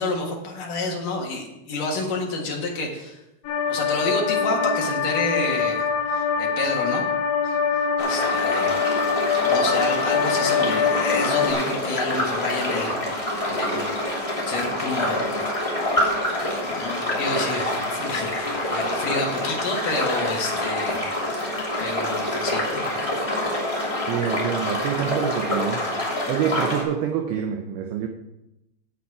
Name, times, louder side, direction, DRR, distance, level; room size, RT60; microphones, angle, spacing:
voice 1, 0.0-3.2 3.7-7.1 7.4-7.6 8.0-8.8 9.5-13.8 14.5-15.3 15.8-15.9 16.3-21.5 21.8-22.9 23.1-23.4, left 2 dB, 60° left, -1 dB, 2.6 m, -29 dB
sound 1, 3.4-11.5, left 6 dB, 80° left, 3.8 m, -24 dB
sound 2, 8.0-26.8, left 1 dB, 10° left, 1.7 m, -26 dB
voice 2, 24.0-25.8 26.3-28.1, right 9 dB, 85° right, 5 dB, 2.2 m, -26 dB
10.5 x 8.7 x 4.8 m, 0.92 s
omnidirectional pair, 5.4 m